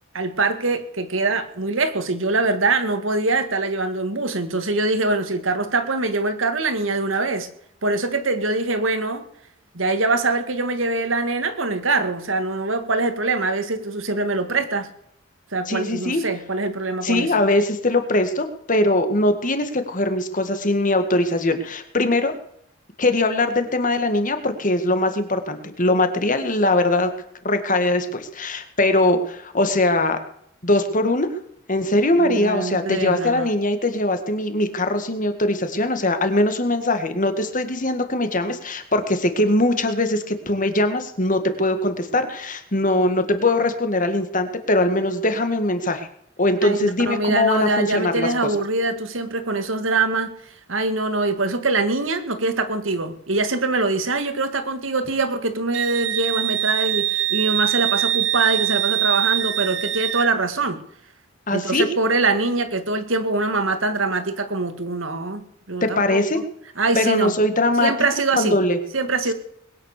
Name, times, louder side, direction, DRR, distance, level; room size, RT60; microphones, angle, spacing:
voice 1, 0.1-7.5 7.8-9.2 9.7-14.9 15.5-17.3 32.2-33.5 46.6-50.3 50.7-60.8 61.5-66.4 66.8-67.3 67.8-68.6 68.9-69.3, right 3 dB, 85° right, 9 dB, 2.0 m, -23 dB
voice 2, 15.7-16.2 17.0-22.3 23.0-27.1 27.4-30.2 30.6-31.3 31.7-46.1 46.4-48.3 61.5-61.9 65.8-66.4 67.0-67.9 68.4-68.8, left 2 dB, 40° left, 8 dB, 2.0 m, -21 dB
Wind instrument woodwind instrument, 55.7-60.3, right 13 dB, 65° right, 0.7 m, -23 dB
21.0 x 9.7 x 6.7 m, 0.73 s
head